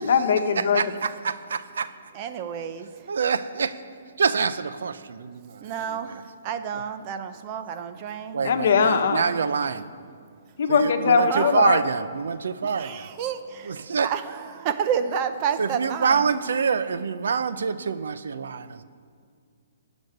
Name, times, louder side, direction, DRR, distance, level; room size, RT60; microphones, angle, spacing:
voice 1, 0.0-0.8 8.4-9.2 10.6-11.8, left 6 dB, 55° left, 6 dB, 1.3 m, -21 dB
voice 2, 0.6-1.9 3.1-3.8 4.2-6.3 6.7-6.8 8.3-9.9 10.7-13.1 13.6-14.1 15.6-18.8, right 5 dB, 75° right, 13 dB, 0.7 m, -26 dB
voice 3, 2.1-2.9 5.6-8.4 11.2-11.5 12.8-13.7 14.0-16.2, right 8 dB, 30° right, 9 dB, 0.8 m, -30 dB
15.5 x 6.4 x 9.8 m, 2.1 s
hypercardioid pair, 160°, 0 cm